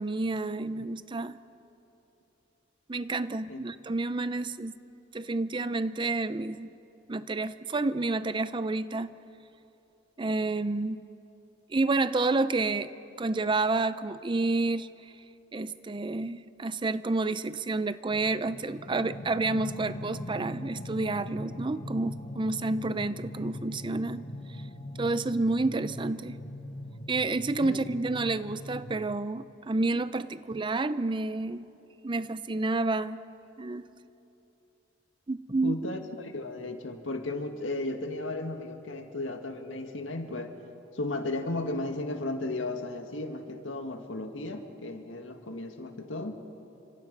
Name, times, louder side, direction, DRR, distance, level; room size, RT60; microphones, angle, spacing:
voice 1, 0.0-1.4 2.9-4.7 5.1-6.7 7.1-9.1 10.2-11.0 11.7-15.1 15.5-24.3 25.0-26.4 27.1-31.7 32.0-33.2 33.6-33.9 35.3-35.8, right 3 dB, 25° right, 14 dB, 0.5 m, -29 dB
sound 1, 18.1-29.1, left 1 dB, 45° left, 1.2 m, -41 dB
voice 2, 35.6-40.5 40.9-46.4, left 2 dB, 85° left, 5 dB, 1.9 m, -35 dB
29.5 x 26.0 x 5.4 m, 2.8 s
head